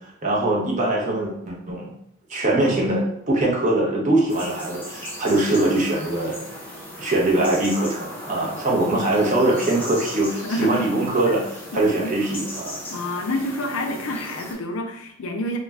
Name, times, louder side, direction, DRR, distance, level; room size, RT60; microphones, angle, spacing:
voice 1, 0.2-1.9 2.3-6.4 7.0-12.8, right 2 dB, 35° right, -3 dB, 0.6 m, -22 dB
sound 1, 4.3-14.5, left 1 dB, 10° left, 0.5 m, -37 dB
voice 2, 10.4-10.9 11.7-12.1 12.9-15.6, left 1 dB, 80° left, 4 dB, 0.4 m, -28 dB
2.4 x 2.1 x 3.3 m, 0.77 s
head